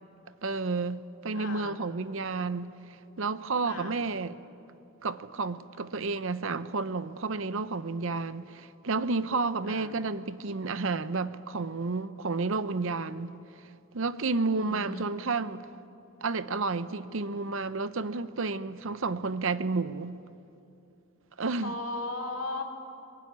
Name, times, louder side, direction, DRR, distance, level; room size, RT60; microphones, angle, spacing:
voice 1, 0.4-2.7 3.2-4.4 5.0-13.3 13.9-15.6 16.2-20.2 21.4-21.7, right 3 dB, 60° right, 0.7 m, -31 dB
voice 2, 1.3-1.8 3.6-3.9 9.7-9.9 14.5-15.1 21.4-22.6, left 2 dB, 60° left, 2.9 m, -37 dB
22.5 x 21.0 x 9.5 m
head